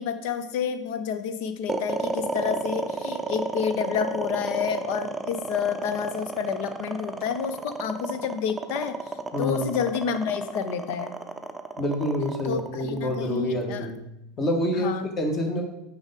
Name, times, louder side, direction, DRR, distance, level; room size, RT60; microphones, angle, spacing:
voice 1, 0.0-9.0 9.4-11.1 12.4-13.9 14.8-15.1, left 7 dB, 55° left, 9 dB, 0.7 m, -29 dB
sound 1, 1.7-14.0, right 3 dB, 10° right, 0.6 m, -32 dB
voice 2, 9.3-9.8 11.8-14.0 14.4-15.6, equal, 30° left, 2 dB, 1.7 m, -27 dB
6.3 x 4.9 x 5.1 m, 0.88 s
figure-of-eight pair, 80°, 0 cm